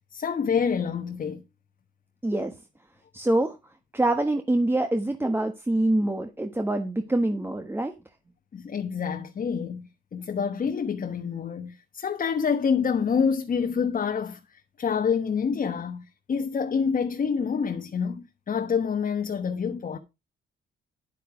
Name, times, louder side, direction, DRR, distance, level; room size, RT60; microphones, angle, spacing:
voice 1, 0.1-1.4 8.5-20.0, left 6 dB, 45° left, 1.3 m, -27 dB
voice 2, 2.2-2.5 3.1-3.6 3.9-7.9, right 1 dB, 10° right, 1.3 m, -25 dB
10.5 x 8.5 x 4.9 m
cardioid pair, 90°, 20 cm